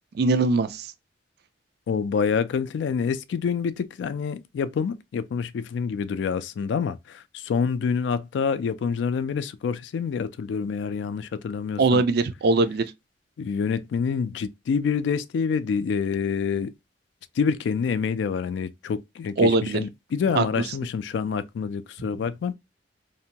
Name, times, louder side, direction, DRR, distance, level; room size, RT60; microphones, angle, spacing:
voice 1, 0.2-0.9 11.8-12.8 19.4-19.8 20.3-20.4, right 3 dB, 60° right, 0.4 m, -21 dB
voice 2, 1.9-12.0 13.4-16.7 17.4-22.5, left 6 dB, 70° left, 0.3 m, -27 dB
2.7 x 2.1 x 2.7 m
head